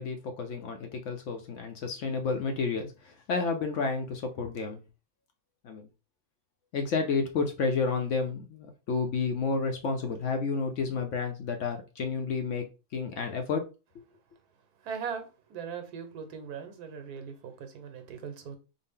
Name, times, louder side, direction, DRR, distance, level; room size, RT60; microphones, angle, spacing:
voice 1, 0.0-4.8 5.6-5.9 6.7-12.6 12.9-13.6, left 4 dB, 65° left, 0.8 m, -31 dB
voice 2, 14.8-18.6, right 6 dB, 90° right, 1.3 m, -39 dB
4.0 x 2.0 x 3.5 m
omnidirectional pair, 1.6 m